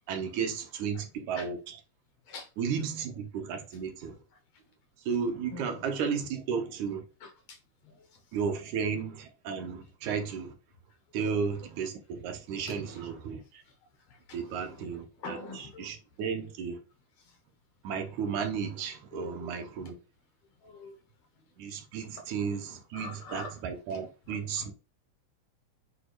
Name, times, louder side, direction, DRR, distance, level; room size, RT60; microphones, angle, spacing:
voice 1, 0.1-1.8 2.6-4.2 5.1-7.0 8.3-10.5 11.1-13.6 14.3-16.8 17.8-20.0 21.6-24.7, right 6 dB, 80° right, 2.5 m, -34 dB
voice 2, 5.5-5.8 7.2-7.6 11.2-11.3 12.7-13.0 14.3-14.7 15.2-15.9 19.1-19.5 20.6-20.9 22.9-23.5 23.9-24.0, left 3 dB, 65° left, 2.0 m, -43 dB
8.4 x 4.8 x 2.4 m
omnidirectional pair, 3.5 m